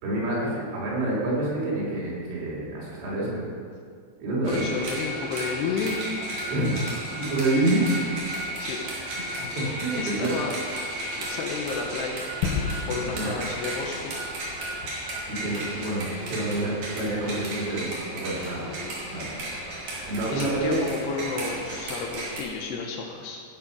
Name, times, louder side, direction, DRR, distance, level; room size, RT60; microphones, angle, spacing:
voice 1, 0.0-3.5 4.2-4.6 6.5-6.8 7.2-7.8 9.4-10.4 13.0-13.3 15.4-18.7 19.1-19.3 20.1-20.8, right 2 dB, 90° right, -5 dB, 6.1 m, -27 dB
sound 1, 4.4-22.4, right 1 dB, 45° right, 3.5 m, -34 dB
voice 2, 4.5-6.2 8.6-8.8 9.3-9.4 10.0-10.5 11.2-12.3 12.9-14.1 20.3-23.4, left 4 dB, 75° left, 2 dB, 2.7 m, -32 dB
Gunshot gunfire / Fireworks / Boom, 12.4-17.2, left 5 dB, 90° left, 3.5 m, -35 dB
15.0 x 8.7 x 5.4 m, 2.1 s
omnidirectional pair, 5.6 m